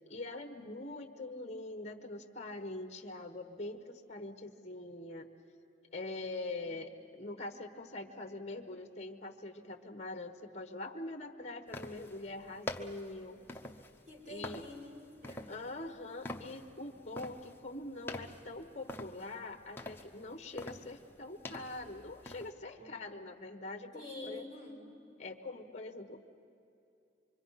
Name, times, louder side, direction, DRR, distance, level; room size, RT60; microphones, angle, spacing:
voice 1, 0.0-5.3 5.9-13.4 14.3-14.6 15.5-24.5 25.2-26.2, left 2 dB, 35° left, 5 dB, 1.2 m, -44 dB
sound 1, 11.7-22.5, left 1 dB, 10° left, 0.8 m, -47 dB
voice 2, 14.1-15.6 22.8-22.9 23.9-24.8, left 2 dB, 40° right, -4 dB, 5.4 m, -47 dB
25.5 x 24.0 x 5.7 m, 2.7 s
head